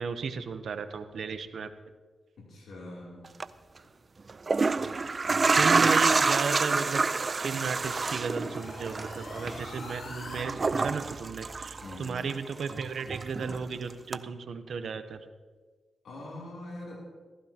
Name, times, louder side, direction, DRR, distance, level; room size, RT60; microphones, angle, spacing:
voice 1, 0.0-1.7 5.5-7.1 7.4-15.2, right 5 dB, 75° right, 10 dB, 0.8 m, -34 dB
voice 2, 2.4-3.4 5.8-5.9 11.8-12.2 16.0-17.0, left 1 dB, 85° left, -4 dB, 3.1 m, -43 dB
sound 1, 3.2-3.4 4.3-12.3 12.6-13.7 14.1-14.2, right 4 dB, 45° right, 0.4 m, -27 dB
sound 2, 6.9-10.4, left 3 dB, 60° left, 1.8 m, -46 dB
15.5 x 14.5 x 2.9 m, 1.4 s
cardioid pair, 65°, 0 cm